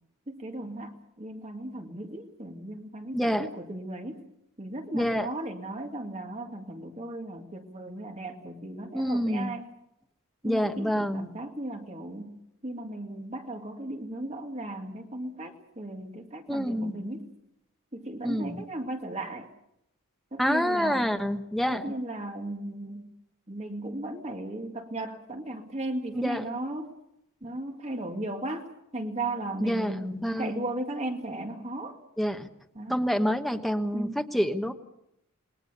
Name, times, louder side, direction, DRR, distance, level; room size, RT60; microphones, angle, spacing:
voice 1, 0.3-4.2 4.6-9.7 10.4-12.4 12.6-17.3 17.9-19.5 20.3-21.1 21.7-23.1 23.5-26.9 27.4-28.6 28.9-32.0 32.8-33.0 33.9-34.2, right 1 dB, 30° right, 4 dB, 2.0 m, -36 dB
voice 2, 3.1-3.5 4.9-5.3 8.9-9.6 10.4-11.3 16.5-17.0 18.2-18.6 20.4-21.9 26.1-26.4 29.6-30.6 32.2-32.5 32.9-34.7, equal, ahead, 5 dB, 1.2 m, -27 dB
28.0 x 21.0 x 6.7 m, 0.81 s
head